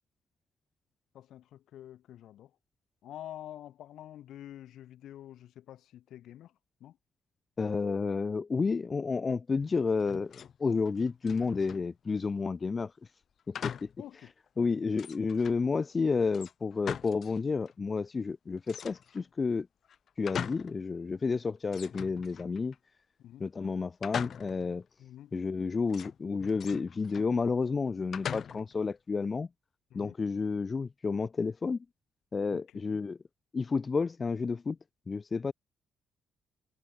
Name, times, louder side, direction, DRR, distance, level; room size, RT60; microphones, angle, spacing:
voice 1, 1.1-2.5 3.0-6.5 6.8-7.0 14.0-14.3 14.6-14.7 21.3-21.4 23.2-23.4 25.0-25.3 29.9-30.1 32.5-32.6 32.9-33.0, left 12 dB, 75° left, 5.8 m, -47 dB
voice 2, 7.6-12.9 13.5-13.9 14.6-19.7 20.2-22.7 23.4-24.8 25.3-29.5 29.9-31.8 32.3-33.2 33.5-34.8 35.1-35.5, left 4 dB, 35° left, 1.5 m, -31 dB
sound 1, 10.0-10.6 10.8-11.9 13.5-14.0 14.5-14.6 15.0-15.6 16.3-17.4 17.7-17.8 18.7-19.3 19.8-20.8 21.1-21.2 21.7-22.8 24.0-24.7 25.9-27.3 28.1-28.8, left 8 dB, 60° left, 7.0 m, -41 dB
cardioid pair, 90°, 0 cm